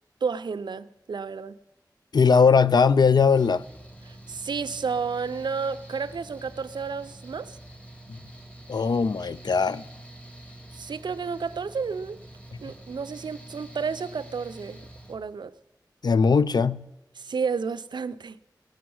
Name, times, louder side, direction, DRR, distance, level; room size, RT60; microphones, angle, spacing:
voice 1, 0.2-1.6 4.1-7.6 10.7-12.2 12.6-14.8 15.1-15.5 17.2-18.4, right 5 dB, 90° right, 0.5 m, -31 dB
voice 2, 2.1-3.6 8.1-8.2 8.7-9.9 16.0-16.9, left 5 dB, 65° left, 0.4 m, -20 dB
Mechanical fan, 3.3-15.2, right 1 dB, 15° left, 2.5 m, -46 dB
18.0 x 7.1 x 6.3 m
wide cardioid pair, 60°, 8 cm